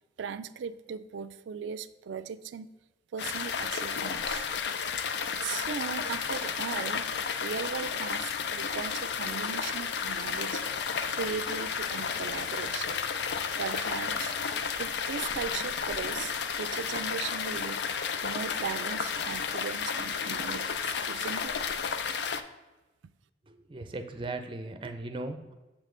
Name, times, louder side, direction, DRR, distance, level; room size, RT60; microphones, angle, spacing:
voice 1, 0.2-2.7 3.1-4.5 5.4-7.0 7.4-10.6 11.1-13.0 13.6-14.3 14.8-17.8 18.2-21.5, right 6 dB, 80° right, 13 dB, 0.4 m, -38 dB
sound 1, 3.2-22.4, left 6 dB, 65° left, 0.4 m, -32 dB
voice 2, 23.5-25.5, right 2 dB, 30° right, 6 dB, 0.5 m, -38 dB
7.0 x 5.3 x 3.8 m, 1.1 s
head